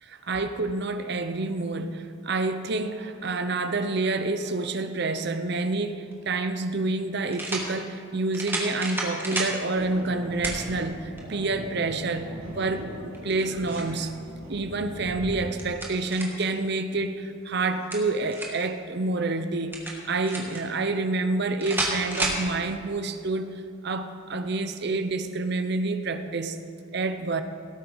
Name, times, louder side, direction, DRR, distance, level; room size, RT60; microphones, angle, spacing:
voice 1, 0.0-14.1 14.5-23.5 23.8-26.6 26.9-27.4, right 3 dB, 50° right, 9 dB, 0.6 m, -28 dB
sound 1, 6.1-6.2 7.3-7.7 8.3-9.6 10.4-10.6 11.2-11.3 13.1-14.0 15.3-16.5 17.7-18.7 19.7-20.6 21.6-22.4, right 2 dB, 10° right, 1.4 m, -31 dB
sound 2, 9.7-15.4, equal, 80° right, 2.6 m, -40 dB
17.0 x 8.3 x 4.0 m, 2.5 s
head